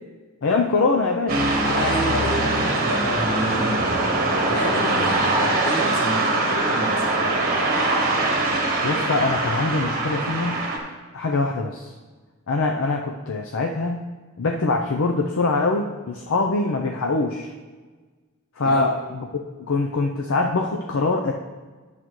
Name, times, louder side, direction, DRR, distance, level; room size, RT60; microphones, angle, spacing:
voice 1, 0.4-1.5 8.5-10.7 11.1-11.9 12.5-14.1 14.4-17.5 18.6-19.3 19.7-21.3, left 3 dB, 60° left, 2 dB, 0.6 m, -23 dB
sound 1, 1.3-10.8, right 2 dB, 40° right, 1.3 m, -22 dB
voice 2, 1.6-3.8 4.4-7.2 18.6-18.9, left 1 dB, 45° left, -1 dB, 1.5 m, -29 dB
10.0 x 7.4 x 3.1 m, 1.4 s
head